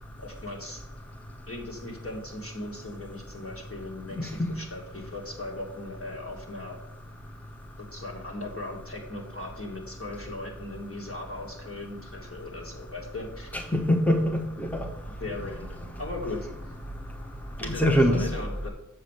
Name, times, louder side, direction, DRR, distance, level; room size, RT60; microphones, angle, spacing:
voice 1, 0.2-0.8 1.5-6.8 7.8-13.5 15.2-16.5 17.6-18.7, left 2 dB, 45° left, -2 dB, 2.4 m, -38 dB
voice 2, 4.2-4.5 13.7-14.9 17.7-18.3, equal, 5° left, 0 dB, 1.1 m, -23 dB
7.5 x 5.0 x 6.5 m, 0.91 s
wide cardioid pair, 60°, 32 cm